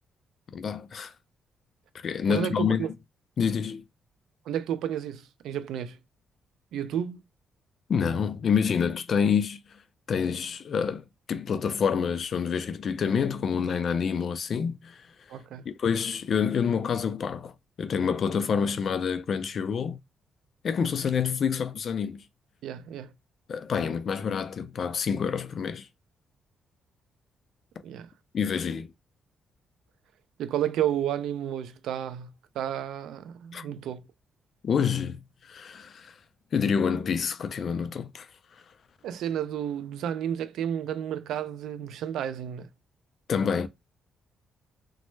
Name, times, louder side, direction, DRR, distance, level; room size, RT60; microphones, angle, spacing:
voice 1, 0.5-1.1 1.9-2.9 3.4-3.8 7.9-9.6 10.1-15.0 15.7-17.5 17.8-20.0 20.6-22.2 23.5-25.9 28.3-28.9 33.5-33.6 34.6-36.1 36.5-38.3 43.3-43.7, left 6 dB, 45° left, 0.3 m, -27 dB
voice 2, 2.3-2.9 4.5-6.0 6.7-7.2 15.3-15.6 22.6-23.1 27.8-28.1 30.4-34.1 39.0-42.7, right 10 dB, 85° right, 0.3 m, -31 dB
3.1 x 2.0 x 3.1 m
cardioid pair, 155°, 0 cm